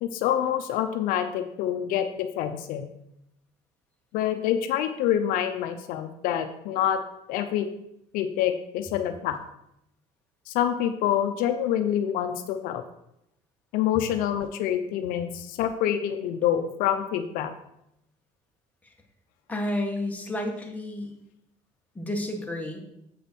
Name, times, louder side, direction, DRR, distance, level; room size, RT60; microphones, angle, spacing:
voice 1, 0.0-2.9 4.1-7.0 7.3-7.7 8.1-9.4 10.5-12.8 13.7-17.5, left 10 dB, 80° left, 8 dB, 0.6 m, -26 dB
voice 2, 19.5-21.1 21.9-22.8, left 1 dB, 10° left, 1 dB, 1.6 m, -31 dB
7.8 x 5.0 x 4.6 m, 0.79 s
cardioid pair, 100°, 14 cm